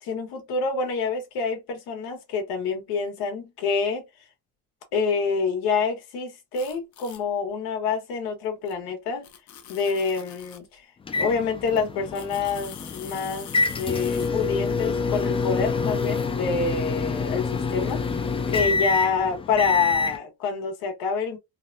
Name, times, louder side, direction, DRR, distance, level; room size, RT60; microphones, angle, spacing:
voice 1, 0.0-4.0 4.9-9.2 9.7-10.9 11.1-13.5 13.8-18.0 18.5-21.4, left 5 dB, 85° left, 1.4 m, -27 dB
sound 1, 6.5-7.2 8.7-8.8 9.2-10.7 12.1-14.3, left 9 dB, 55° left, 0.8 m, -44 dB
sound 2, 11.1-20.2, left 4 dB, 15° left, 0.4 m, -27 dB
3.4 x 2.2 x 2.6 m
cardioid pair, 135°, 36 cm